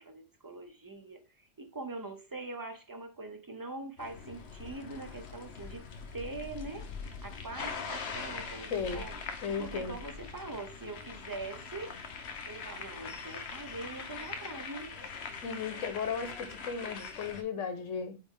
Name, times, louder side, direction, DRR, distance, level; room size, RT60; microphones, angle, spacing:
voice 1, 0.0-6.9 7.2-9.2 9.6-12.0 12.5-15.0, right 2 dB, 30° right, 0.3 m, -43 dB
sound 1, 4.0-17.4, left 5 dB, 60° left, 1.0 m, -42 dB
voice 2, 8.7-9.1 9.4-10.0 15.4-18.2, left 6 dB, 80° left, 1.3 m, -35 dB
8.6 x 3.2 x 3.6 m
omnidirectional pair, 1.3 m